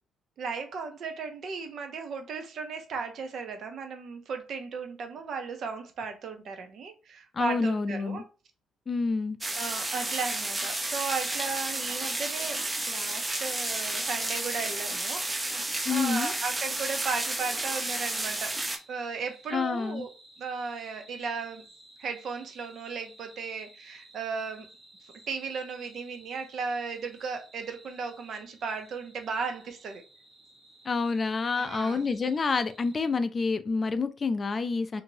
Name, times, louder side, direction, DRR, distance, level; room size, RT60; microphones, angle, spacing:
voice 1, 0.4-8.2 9.6-18.6 18.9-20.1 20.4-21.6 22.0-24.7 25.3-30.0 31.6-32.1, right 5 dB, 65° right, 0.6 m, -36 dB
voice 2, 7.3-8.2 8.9-9.4 15.8-16.3 19.5-20.1 30.9-35.0, left 4 dB, 35° left, 0.3 m, -28 dB
sound 1, 9.4-18.8, right 2 dB, 20° right, 0.5 m, -32 dB
sound 2, 18.3-33.1, right 1 dB, 45° right, 1.2 m, -56 dB
2.9 x 2.6 x 2.7 m
cardioid pair, 90°, 0 cm